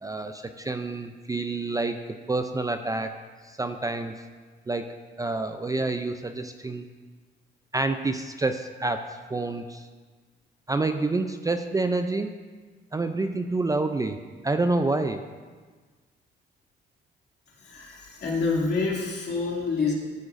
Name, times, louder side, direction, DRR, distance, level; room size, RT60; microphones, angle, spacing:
voice 1, 0.0-3.1 3.4-4.1 4.7-4.9 5.2-6.8 7.7-9.9 10.7-12.3 12.9-14.2 14.4-15.2, right 2 dB, 15° right, 8 dB, 0.4 m, -28 dB
voice 2, 17.6-19.9, left 4 dB, 60° left, -3 dB, 2.5 m, -27 dB
13.5 x 7.9 x 2.6 m, 1.5 s
cardioid pair, 90°, 20 cm